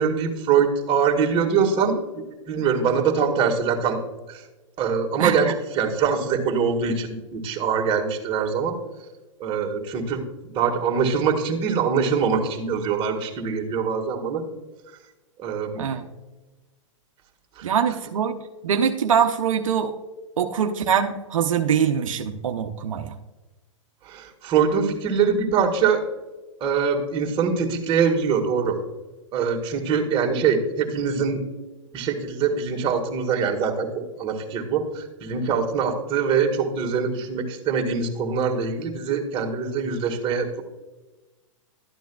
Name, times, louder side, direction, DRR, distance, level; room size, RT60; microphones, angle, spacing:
voice 1, 0.0-4.0 4.3-4.4 4.8-8.7 9.4-10.2 10.5-14.4 15.4-15.9 17.6-17.7 24.0-26.0 26.6-28.8 29.3-31.4 31.9-40.6, right 6 dB, 30° right, 1 dB, 1.7 m, -23 dB
voice 2, 17.6-18.4 18.6-20.0 20.4-23.1, right 7 dB, 80° right, 6 dB, 0.7 m, -23 dB
12.5 x 9.2 x 2.3 m, 1.1 s
hypercardioid pair, 120°, 17 cm